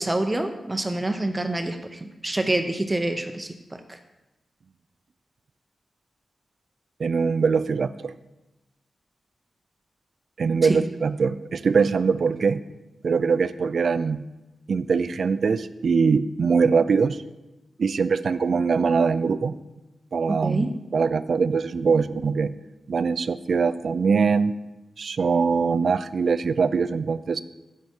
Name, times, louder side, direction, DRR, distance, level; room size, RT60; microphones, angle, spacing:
voice 1, 0.0-4.0 10.6-10.8 20.4-20.7, right 2 dB, 20° right, 7 dB, 0.6 m, -27 dB
voice 2, 7.0-8.1 10.4-12.6 13.0-14.2 14.7-17.2 17.8-19.6 20.1-22.5 22.9-24.5 25.0-27.4, right 5 dB, 65° right, 15 dB, 0.4 m, -22 dB
8.3 x 8.0 x 4.4 m, 1.0 s
wide cardioid pair, 85°, 0 cm